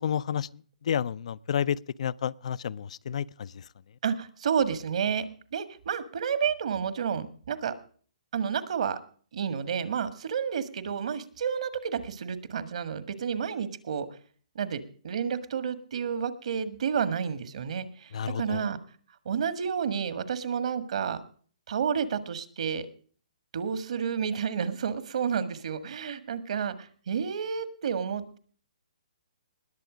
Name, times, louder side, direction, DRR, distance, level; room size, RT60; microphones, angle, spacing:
voice 1, 0.0-3.7 18.1-18.7, left 8 dB, 60° left, 0.5 m, -31 dB
voice 2, 4.0-5.2 5.5-7.7 8.3-9.0 9.3-14.1 14.5-18.8 19.2-21.2 21.7-22.9 23.5-28.4, right 7 dB, 60° right, 1.7 m, -30 dB
20.0 x 7.1 x 5.1 m
hypercardioid pair, 150°, 4 cm